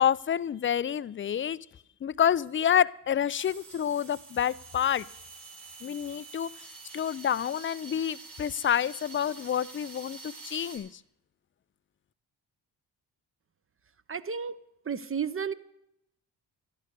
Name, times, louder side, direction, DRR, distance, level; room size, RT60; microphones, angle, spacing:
voice 1, 0.0-1.6 2.0-5.1 5.8-6.5 6.9-10.9, left 9 dB, 25° left, 0.4 m, -28 dB
sound 1, 3.3-10.8, right 3 dB, 85° right, 4.3 m, -47 dB
voice 2, 14.1-14.6 14.8-15.5, right 6 dB, 25° right, 0.8 m, -32 dB
12.5 x 10.5 x 6.9 m
supercardioid pair, 50°, 48 cm